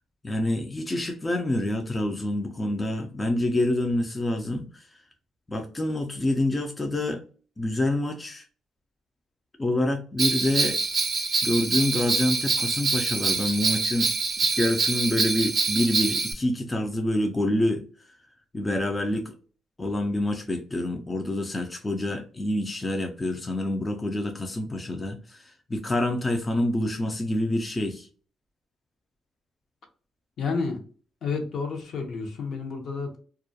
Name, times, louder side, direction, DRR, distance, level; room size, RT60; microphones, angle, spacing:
voice 1, 0.2-5.0 5.5-7.2 7.6-8.4 9.6-10.8 11.4-14.1 14.5-17.8 18.5-19.3 19.8-28.1, left 1 dB, 20° left, 0.4 m, -27 dB
Bell, 10.2-16.3, right 4 dB, 35° right, 0.5 m, -25 dB
voice 2, 30.4-30.8 31.2-33.2, left 4 dB, 65° left, 0.7 m, -30 dB
2.3 x 2.2 x 2.6 m
cardioid pair, 90°, 0 cm